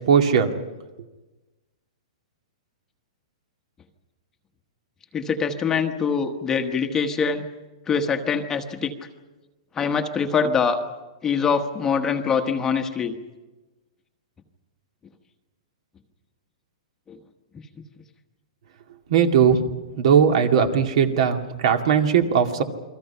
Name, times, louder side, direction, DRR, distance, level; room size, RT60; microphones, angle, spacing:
voice 1, 0.1-0.5 19.1-19.6 20.0-22.6, right 7 dB, 55° right, 5 dB, 2.3 m, -18 dB
voice 2, 5.1-7.4 7.9-8.9 9.7-10.8 11.2-13.2 17.1-17.2, left 6 dB, 15° left, 5 dB, 1.2 m, -24 dB
29.0 x 22.5 x 5.7 m, 1.2 s
hypercardioid pair, 160°, 4 cm